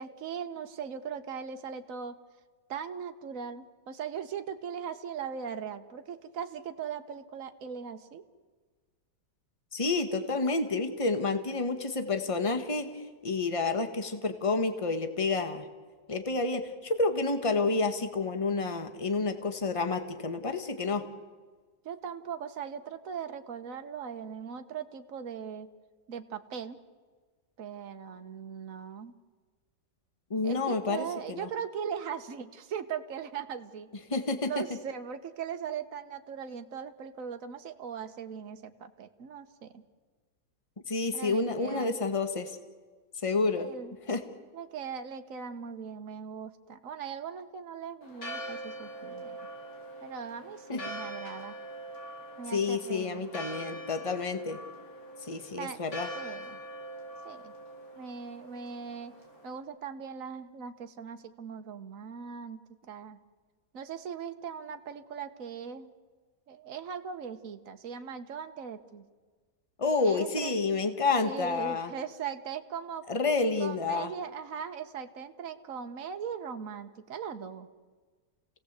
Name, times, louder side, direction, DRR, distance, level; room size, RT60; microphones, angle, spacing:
voice 1, 0.0-2.2 2.7-8.2 21.8-25.7 26.1-26.8 27.6-29.1 30.4-33.9 34.4-39.8 41.1-41.9 43.6-44.0 44.5-49.4 50.0-51.6 52.4-53.2 55.6-55.8 56.1-56.6 57.2-57.5 58.0-59.1 59.4-63.2 63.7-65.9 66.5-69.0 70.0-70.5 71.2-73.1 73.6-77.7, right 7 dB, 55° right, 8 dB, 1.6 m, -39 dB
voice 2, 9.7-15.6 16.1-21.1 30.3-31.5 34.1-34.6 40.9-42.5 43.2-43.7 44.1-44.2 50.7-50.8 52.5-54.6 55.2-56.1 69.8-71.9 73.1-74.1, left 3 dB, 20° left, 8 dB, 1.5 m, -29 dB
Church bell, 48.0-59.6, right 1 dB, 90° left, 5.1 m, -43 dB
29.0 x 18.0 x 8.2 m, 1.4 s
omnidirectional pair, 1.8 m